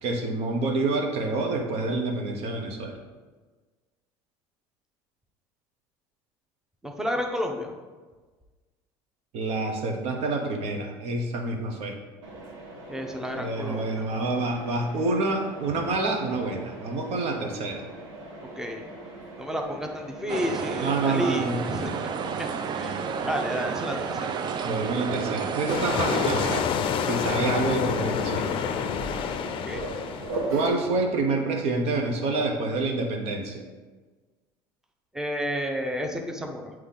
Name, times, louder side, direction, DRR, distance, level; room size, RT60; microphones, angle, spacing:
voice 1, 0.0-3.0 9.3-12.0 13.3-17.9 20.8-21.6 24.6-26.6 27.1-28.5 30.5-33.6, right 3 dB, 65° right, 3 dB, 1.1 m, -27 dB
voice 2, 6.8-7.7 12.9-14.1 18.5-18.8 19.4-21.9 22.4-24.3 29.6-29.8 35.1-36.7, equal, 5° right, 3 dB, 0.7 m, -31 dB
Mechanisms, 12.2-30.7, right 2 dB, 85° right, 1.3 m, -41 dB
sound 1, 20.3-26.6, right 6 dB, 40° right, 0.5 m, -31 dB
sound 2, 25.7-30.5, left 7 dB, 50° left, 0.5 m, -28 dB
8.0 x 3.1 x 3.8 m, 1.3 s
supercardioid pair, 90°, 12 cm